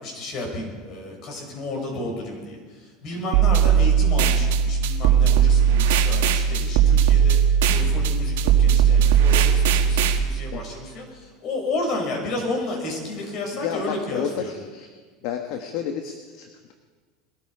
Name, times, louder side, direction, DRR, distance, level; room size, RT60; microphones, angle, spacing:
voice 1, 0.0-7.4 7.7-14.5, left 2 dB, 50° left, 0 dB, 6.0 m, -32 dB
sound 1, 3.3-10.2, right 8 dB, 80° right, 1.3 m, -18 dB
voice 2, 13.5-14.9 15.2-16.7, left 8 dB, 65° left, 5 dB, 1.4 m, -31 dB
21.5 x 13.0 x 4.9 m, 1.5 s
supercardioid pair, 120°, 0 cm